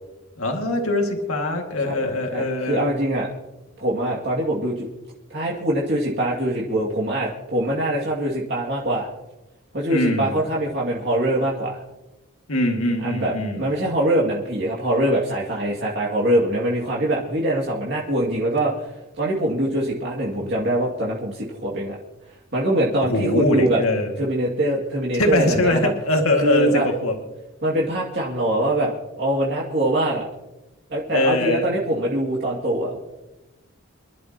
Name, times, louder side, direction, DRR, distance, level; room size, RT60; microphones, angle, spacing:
voice 1, 0.4-2.9 9.9-10.3 12.5-13.6 23.1-24.2 25.2-27.1 31.1-31.7, left 1 dB, 90° left, 2 dB, 2.2 m, -22 dB
voice 2, 1.8-3.3 3.8-4.9 5.3-9.1 9.7-11.8 13.0-18.9 19.2-22.0 22.5-23.8 24.2-25.9 26.4-26.9 27.6-30.3 30.9-33.0, right 1 dB, 50° right, -4 dB, 2.4 m, -23 dB
27.5 x 12.0 x 3.0 m, 1.0 s
head